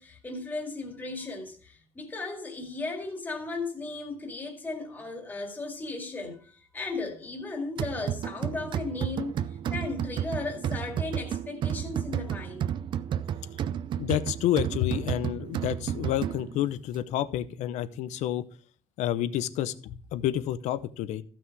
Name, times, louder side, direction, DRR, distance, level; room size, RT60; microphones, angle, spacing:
voice 1, 0.0-9.4 9.7-12.7, left 3 dB, 15° left, 2.1 m, -36 dB
sound 1, 7.8-16.7, right 9 dB, 45° right, 0.5 m, -32 dB
voice 2, 13.9-18.4 19.0-21.2, left 12 dB, 85° left, 0.8 m, -29 dB
14.5 x 6.1 x 4.7 m
cardioid pair, 175°, 12 cm